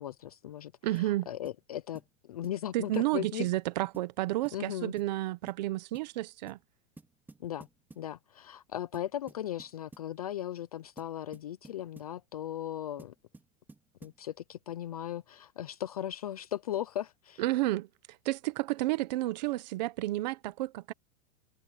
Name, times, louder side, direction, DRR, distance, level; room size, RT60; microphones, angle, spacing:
voice 1, 0.0-3.5 4.5-4.9 7.4-7.7 8.0-13.1 14.0-17.4, left 11 dB, 30° left, 0.4 m, -37 dB
voice 2, 0.8-1.3 2.7-6.6 17.4-17.9 18.2-20.9, right 17 dB, 35° right, 1.0 m, -31 dB
sound 1, 1.0-1.2 1.5-1.6 2.0-2.2 2.4-2.6 2.9-3.2 3.5-3.6 3.9-4.1 4.5-4.7 5.0-5.2 5.5-5.6 5.9-6.1 6.5-6.7 7.0-8.1 8.9-10.1 11.0-12.2 13.0-14.2, right 3 dB, 5° right, 3.6 m, -54 dB
supercardioid pair, 180°, 38 cm